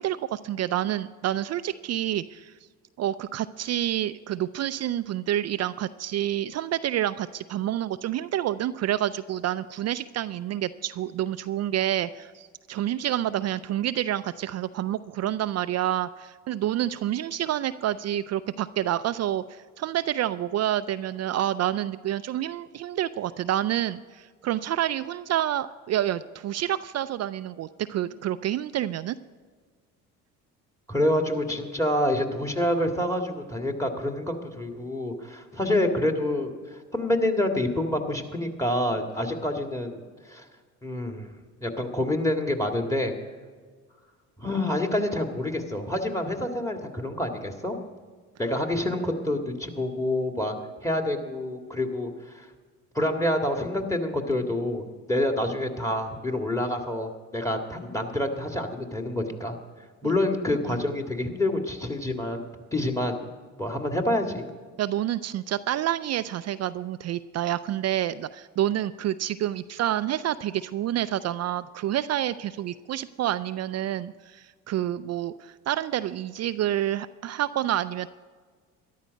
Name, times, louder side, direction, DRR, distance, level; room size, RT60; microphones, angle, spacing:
voice 1, 0.0-2.5 3.0-29.2 60.0-60.1 60.7-60.8 64.8-78.1, right 12 dB, 45° right, 13 dB, 0.4 m, -28 dB
voice 2, 30.9-40.0 40.3-40.4 40.8-41.3 41.6-43.1 44.4-47.8 48.4-52.5 52.9-59.6 60.0-63.2 63.6-64.5, left 1 dB, 10° left, 4 dB, 1.9 m, -27 dB
13.0 x 11.5 x 5.2 m, 1.5 s
supercardioid pair, 70°, 36 cm